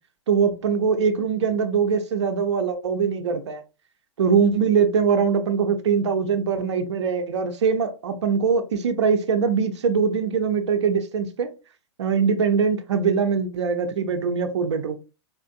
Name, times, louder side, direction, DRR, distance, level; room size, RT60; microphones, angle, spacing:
voice 1, 0.3-3.6 4.2-11.5 12.0-15.0, right 6 dB, 70° right, 0.7 m, -22 dB
4.4 x 2.5 x 2.4 m
figure-of-eight pair, 105°, 15 cm